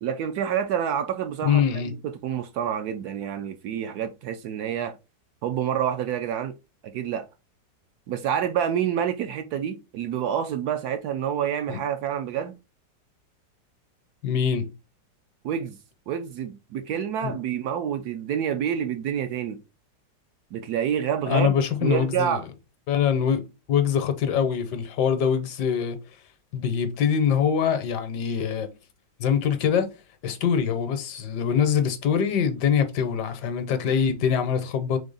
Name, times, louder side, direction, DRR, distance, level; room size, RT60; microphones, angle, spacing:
voice 1, 0.0-1.6 2.2-4.9 5.4-6.5 6.8-7.3 8.1-12.5 15.4-15.8 16.1-19.6 20.5-21.6 21.8-22.4, right 9 dB, 70° right, 1.0 m, -28 dB
voice 2, 1.4-1.9 11.7-11.8 14.2-14.6 17.2-17.3 21.3-22.4 22.9-23.4 23.7-26.0 26.5-28.7 29.2-29.9 30.2-35.0, left 7 dB, 75° left, 1.2 m, -23 dB
3.8 x 3.4 x 3.8 m
omnidirectional pair, 1.9 m